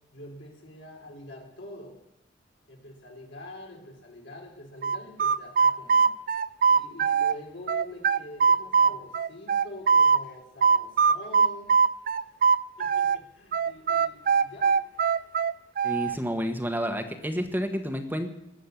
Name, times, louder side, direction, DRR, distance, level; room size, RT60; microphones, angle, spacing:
voice 1, 0.1-2.0 2.7-6.1 6.7-11.8 12.2-12.4 12.8-14.8, left 1 dB, 75° left, 0 dB, 4.7 m, -45 dB
sound 1, 4.8-7.4 7.7-10.2 10.6-13.2 13.5-16.1, right 5 dB, 50° right, 0.5 m, -21 dB
voice 2, 15.8-18.3, equal, 10° right, 6 dB, 1.3 m, -30 dB
18.5 x 7.5 x 9.8 m, 0.88 s
head